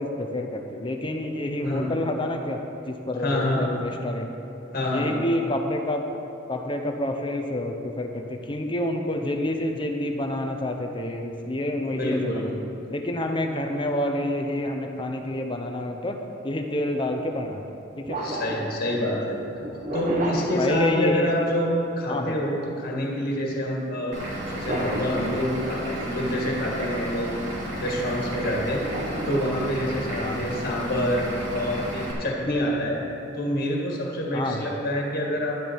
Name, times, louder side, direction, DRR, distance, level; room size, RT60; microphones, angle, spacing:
voice 1, 0.0-2.6 2.9-4.3 4.9-6.0 6.5-12.5 12.9-16.2 16.4-17.6 18.0-18.2 20.6-21.5 22.1-22.4 30.2-30.4 34.3-34.7, left 1 dB, 25° left, 4 dB, 0.8 m, -28 dB
voice 2, 3.2-3.6 4.7-5.2 11.8-12.5 18.2-19.4 19.9-24.2 24.5-27.3 27.8-28.8 29.3-33.0 33.3-35.6, equal, 45° left, -1 dB, 1.9 m, -27 dB
sound 1, 16.5-16.7 18.1-21.4 24.4-25.9 28.9-30.1, right 1 dB, 40° right, 1.4 m, -33 dB
Vehicle / Engine, 24.1-32.1, right 1 dB, 60° right, 2.9 m, -33 dB
11.5 x 10.5 x 4.6 m, 2.9 s
head